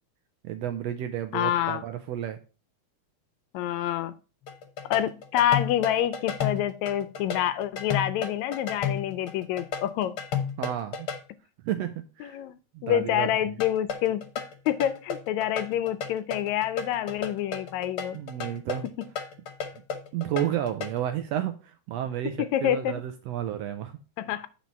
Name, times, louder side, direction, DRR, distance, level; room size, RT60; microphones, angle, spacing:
voice 1, 0.4-2.4 10.6-11.1 11.6-12.4 12.7-13.3 18.1-18.9 20.1-24.0, right 11 dB, 80° right, 1.5 m, -31 dB
voice 2, 1.3-1.8 3.5-4.1 4.9-10.1 12.2-12.5 12.8-14.2 14.7-18.2 22.4-23.0 24.2-24.5, left 11 dB, 80° left, 1.8 m, -27 dB
sound 1, 4.5-11.2 13.6-21.0, left 7 dB, 60° left, 1.6 m, -33 dB
8.4 x 4.5 x 5.3 m
omnidirectional pair, 3.4 m